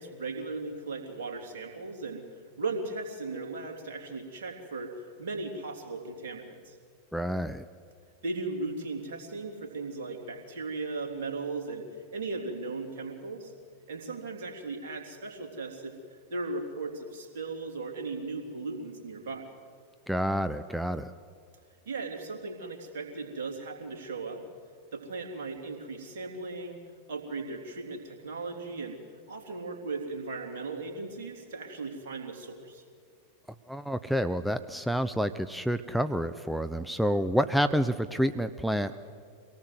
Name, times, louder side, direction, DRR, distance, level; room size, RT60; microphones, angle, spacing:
voice 1, 0.0-6.8 8.2-13.5 13.9-19.5 21.8-24.4 24.9-26.8 27.1-29.0 29.3-32.8, right 3 dB, 55° right, 1 dB, 3.4 m, -37 dB
voice 2, 7.1-7.6 20.1-21.1 33.7-39.1, equal, ahead, 10 dB, 0.6 m, -28 dB
24.5 x 18.0 x 7.9 m, 2.2 s
figure-of-eight pair, 90°, 0 cm